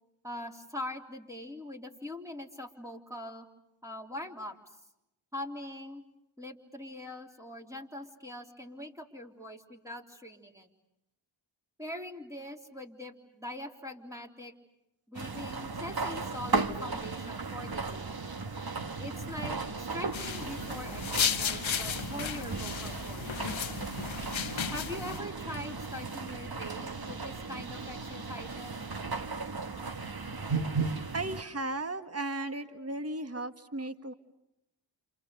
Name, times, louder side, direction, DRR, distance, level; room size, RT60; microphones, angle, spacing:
voice 1, 0.2-3.5 3.8-4.6 5.3-6.0 6.4-10.7 11.8-14.5 15.1-18.1 19.0-23.3 24.7-28.7, left 1 dB, 5° right, 1 dB, 3.6 m, -42 dB
sound 1, 15.1-31.4, right 4 dB, 45° right, 1.5 m, -36 dB
sound 2, 20.1-25.2, left 8 dB, 70° left, 1.0 m, -34 dB
voice 2, 31.1-34.1, right 2 dB, 30° right, 9 dB, 1.6 m, -35 dB
30.0 x 28.0 x 6.7 m, 0.87 s
cardioid pair, 40°, 49 cm